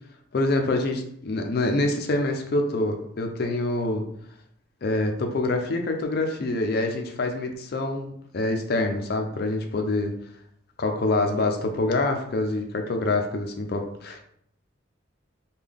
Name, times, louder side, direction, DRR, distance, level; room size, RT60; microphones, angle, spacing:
voice 1, 0.3-4.1 4.8-10.1 10.8-14.2, left 2 dB, 50° left, 4 dB, 0.4 m, -26 dB
3.6 x 2.2 x 3.4 m, 0.69 s
head